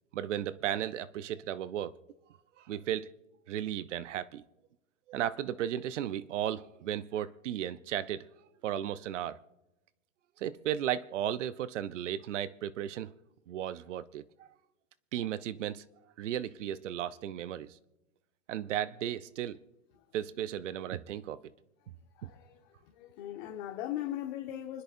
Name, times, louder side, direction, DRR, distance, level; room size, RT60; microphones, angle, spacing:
voice 1, 0.1-2.0 2.6-3.1 3.5-4.4 5.1-8.3 8.6-9.4 10.4-13.1 13.5-14.5 15.1-15.8 16.2-17.8 18.5-19.6 20.1-21.4 22.2-22.3, right 11 dB, 65° right, 0.8 m, -35 dB
voice 2, 22.1-24.8, left 12 dB, 40° left, 1.3 m, -39 dB
29.5 x 10.5 x 2.6 m
hypercardioid pair, 145°, 39 cm